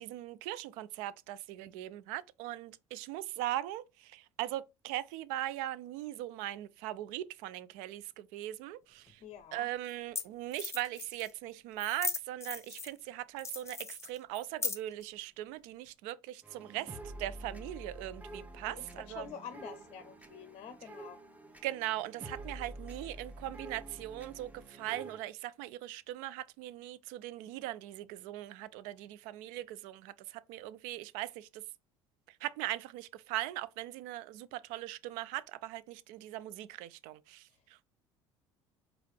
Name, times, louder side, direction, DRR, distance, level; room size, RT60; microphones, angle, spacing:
voice 1, 0.0-9.2 9.5-19.3 21.6-31.6 32.3-37.8, right 14 dB, 65° right, 0.4 m, -40 dB
sound 1, 9.1-9.2 9.9-10.0 10.2-10.3 10.5-11.3 11.8-13.0 13.4-15.0, left 4 dB, 20° left, 0.8 m, -38 dB
voice 2, 9.2-9.7 18.7-21.2, left 7 dB, 45° left, 0.6 m, -47 dB
sound 2, 16.4-25.2, right 1 dB, 10° right, 1.0 m, -48 dB
4.7 x 2.5 x 3.2 m
hypercardioid pair, 65°, 14 cm